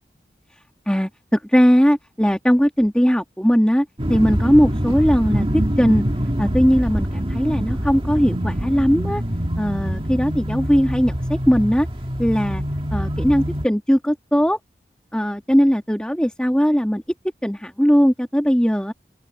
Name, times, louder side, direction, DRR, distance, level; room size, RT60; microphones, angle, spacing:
voice 1, 0.9-6.0 6.4-9.2 9.6-11.9 12.2-12.6 12.9-14.6 15.1-17.0 17.4-18.9, equal, 5° left, 2.2 m, -19 dB
sound 1, 4.0-13.7, equal, 30° right, 1.8 m, -24 dB
open air
head